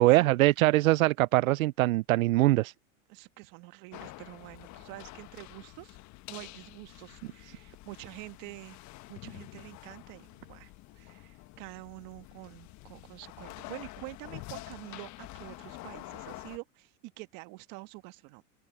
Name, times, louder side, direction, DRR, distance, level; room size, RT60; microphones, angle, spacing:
voice 1, 0.0-2.7, right 18 dB, 85° right, 0.5 m, -23 dB
voice 2, 3.1-6.0 6.3-8.8 9.1-18.4, right 25 dB, 55° right, 1.5 m, -47 dB
sound 1, 3.9-16.6, left 18 dB, 45° left, 1.4 m, -47 dB
open air
supercardioid pair, 120°, 40 cm